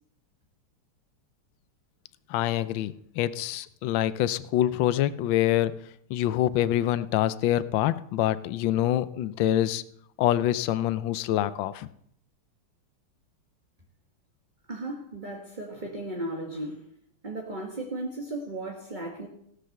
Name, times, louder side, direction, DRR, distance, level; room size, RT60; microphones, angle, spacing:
voice 1, 2.3-5.7 6.1-9.8 10.2-11.9, left 13 dB, 70° left, 15 dB, 1.3 m, -25 dB
voice 2, 14.7-16.9 17.2-19.3, right 1 dB, 25° right, 0 dB, 1.7 m, -35 dB
16.5 x 7.8 x 6.6 m, 0.69 s
omnidirectional pair, 2.4 m